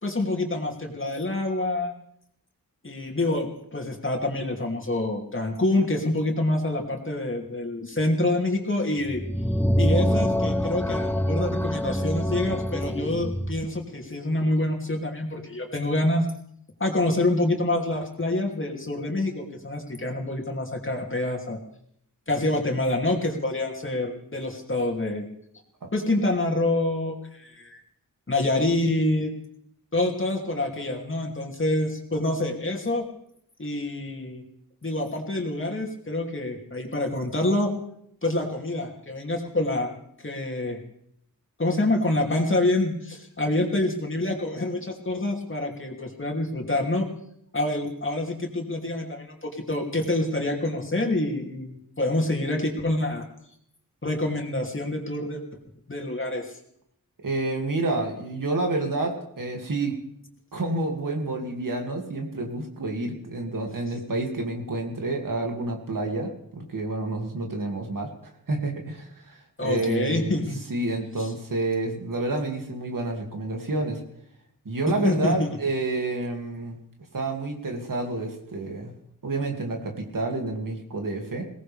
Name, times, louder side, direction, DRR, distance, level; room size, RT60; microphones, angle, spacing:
voice 1, 0.0-1.9 2.8-9.2 9.8-16.3 16.8-21.6 22.3-25.2 25.9-27.8 28.3-29.3 29.9-33.0 33.6-34.4 34.8-37.7 38.2-40.8 41.6-47.1 47.5-53.2 54.0-55.4 55.9-56.5 69.6-70.6 71.2-71.3 74.9-75.6, left 2 dB, 35° left, 1 dB, 2.9 m, -26 dB
sound 1, 9.0-13.7, equal, 5° left, 0.9 m, -25 dB
voice 2, 57.2-60.0 60.5-68.1 68.5-70.4 70.7-74.0 74.6-76.8 77.1-78.9 79.2-81.5, right 2 dB, 65° right, 2 dB, 2.7 m, -29 dB
22.0 x 18.0 x 3.6 m, 0.72 s
wide cardioid pair, 85°, 35 cm